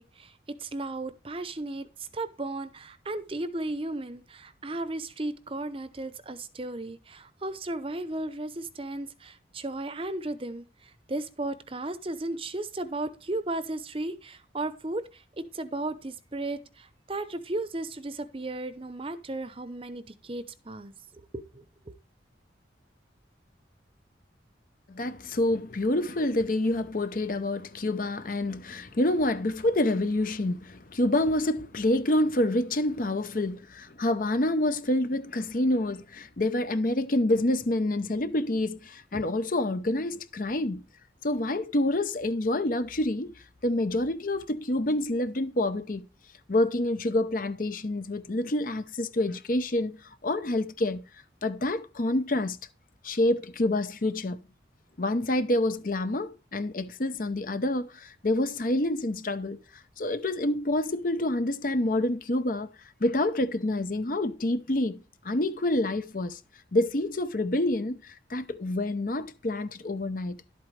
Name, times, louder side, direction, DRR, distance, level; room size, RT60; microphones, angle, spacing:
voice 1, 0.0-1.9 2.1-20.9 21.3-21.9, right 2 dB, 30° right, 0.8 m, -35 dB
voice 2, 24.9-40.8 41.2-43.3 43.6-46.1 46.5-50.0 50.2-51.0 51.4-52.6 53.0-54.4 55.0-59.6 60.0-62.7 63.0-66.4 66.7-70.4, left 1 dB, 45° left, 0.7 m, -27 dB
11.5 x 8.3 x 3.3 m
head